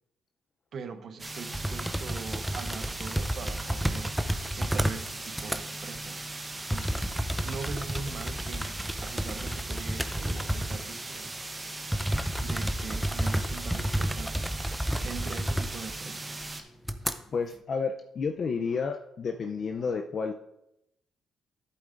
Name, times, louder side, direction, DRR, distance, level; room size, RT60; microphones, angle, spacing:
voice 1, 0.7-6.3 6.7-8.7 9.0-11.3 12.4-14.4 15.0-16.4, right 5 dB, 55° right, 10 dB, 0.7 m, -42 dB
sound 1, 1.2-16.6, right 2 dB, 20° right, 0.9 m, -39 dB
sound 2, 1.5-5.1 5.3-5.6 6.7-10.9 11.2-11.3 11.9-16.0 16.3-16.4 16.8-17.1, equal, ahead, 0.6 m, -31 dB
voice 2, 17.3-20.3, left 5 dB, 50° left, 5 dB, 0.5 m, -31 dB
11.0 x 8.4 x 2.5 m, 0.83 s
cardioid pair, 90°, 0 cm